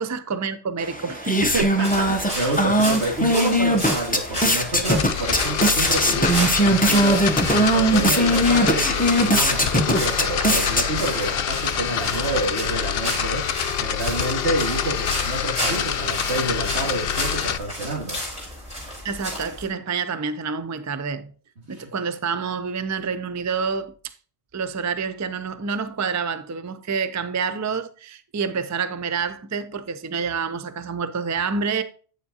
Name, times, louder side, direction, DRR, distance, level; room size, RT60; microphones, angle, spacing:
voice 1, 0.0-1.7 19.0-21.3 21.7-24.1 24.5-31.8, right 5 dB, 30° right, 0.3 m, -28 dB
sound 1, 0.8-11.3, equal, 10° left, 0.6 m, -21 dB
voice 2, 1.4-18.2 21.7-21.9, right 2 dB, 80° right, 2.6 m, -28 dB
sound 2, 1.8-19.7, equal, 5° right, 4.1 m, -33 dB
sound 3, 5.0-17.6, left 9 dB, 65° left, 0.8 m, -26 dB
8.8 x 7.1 x 2.7 m
omnidirectional pair, 1.1 m